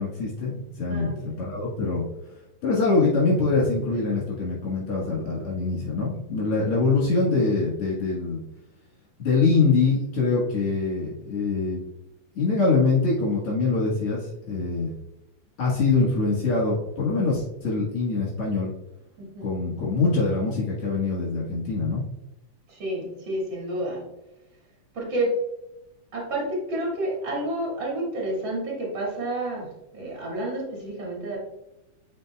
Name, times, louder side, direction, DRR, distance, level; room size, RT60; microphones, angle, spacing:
voice 1, 0.0-2.0 2.6-8.4 9.2-11.8 12.4-14.9 15.6-18.7 19.4-22.0, left 3 dB, 55° left, -6 dB, 2.3 m, -24 dB
voice 2, 0.9-1.2 5.6-5.7 19.2-19.5 22.7-24.0 24.9-25.3 26.1-31.4, right 1 dB, 40° right, -3 dB, 2.9 m, -30 dB
9.2 x 4.9 x 2.3 m, 0.90 s
omnidirectional pair, 3.3 m